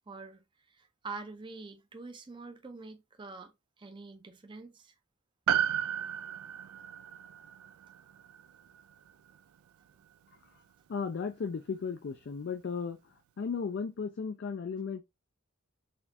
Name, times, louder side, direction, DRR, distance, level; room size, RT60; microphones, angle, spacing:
voice 1, 0.1-0.4 0.7-4.9, right 3 dB, 20° right, 0.4 m, -45 dB
Piano, 5.5-10.1 10.3-10.4, right 10 dB, 85° right, 0.3 m, -34 dB
voice 2, 10.9-15.0, left 5 dB, 55° left, 0.3 m, -35 dB
4.2 x 2.3 x 2.6 m
head